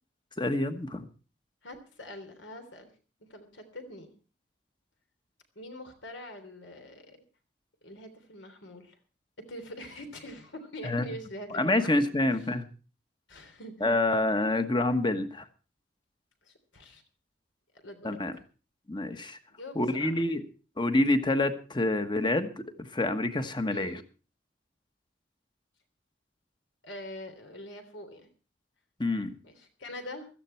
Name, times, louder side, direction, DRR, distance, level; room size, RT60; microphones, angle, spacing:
voice 1, 0.4-1.0 10.8-11.0 11.5-12.7 13.8-15.4 18.0-18.3 18.9-19.4 19.7-20.4 20.8-24.0 29.0-29.4, left 2 dB, 25° left, 10 dB, 1.2 m, -27 dB
voice 2, 1.6-2.9 3.3-4.1 5.6-7.2 7.8-9.0 9.5-11.9 12.3-12.5 13.3-13.7 16.4-17.0 17.7-18.4 19.5-20.1 21.2-21.4 23.7-24.0 26.8-28.3 29.4-30.3, left 1 dB, 80° left, 6 dB, 3.3 m, -44 dB
16.5 x 13.5 x 4.4 m, 0.36 s
head